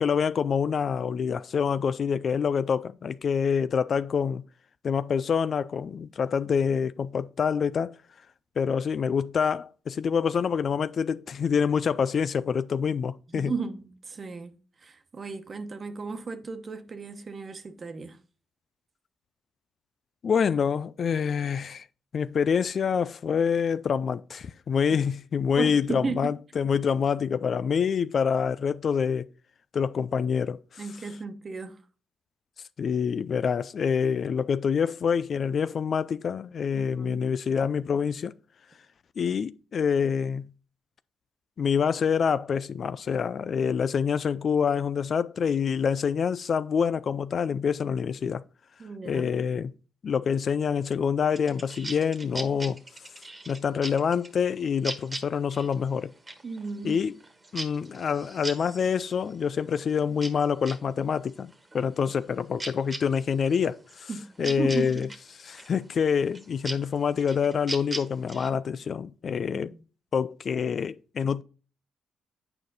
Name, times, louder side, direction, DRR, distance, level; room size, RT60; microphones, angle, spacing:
voice 1, 0.0-4.4 4.8-7.9 8.6-13.5 20.2-21.9 22.1-29.3 29.7-30.8 32.8-38.3 39.2-40.5 41.6-48.4 49.1-49.7 50.0-52.8 53.5-56.1 56.8-57.1 57.5-64.1 64.4-65.1 65.5-69.7 70.1-71.4, left 6 dB, 55° left, 0.4 m, -26 dB
voice 2, 13.3-18.2 25.6-26.3 30.8-31.8 36.7-37.3 48.8-49.3 56.4-57.0 64.1-65.1 69.5-69.8, right 4 dB, 40° right, 1.1 m, -35 dB
sound 1, 51.3-60.8 61.2-68.5, right 2 dB, 25° right, 1.5 m, -40 dB
8.8 x 4.9 x 3.9 m
supercardioid pair, 60°, 0 cm